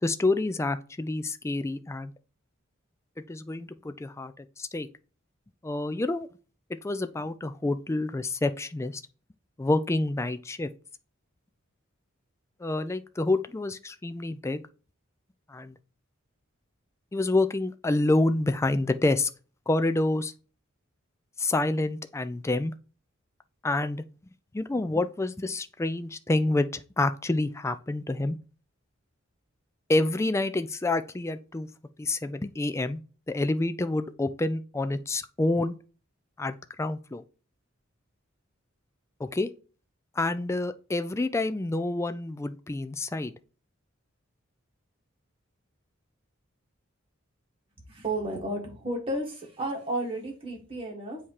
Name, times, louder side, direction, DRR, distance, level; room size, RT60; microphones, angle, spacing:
voice 1, 0.0-2.1 3.3-4.9 5.6-6.3 6.8-9.0 9.6-10.7 12.6-14.6 15.5-15.8 17.1-19.3 19.7-20.3 21.4-22.7 23.6-24.0 24.5-28.4 29.9-31.7 32.0-33.0 33.3-35.8 36.4-37.2 39.2-39.5 40.2-43.3, left 2 dB, 15° left, 0.3 m, -28 dB
voice 2, 47.9-51.2, right 1 dB, 25° right, 1.7 m, -32 dB
7.6 x 2.8 x 4.7 m
head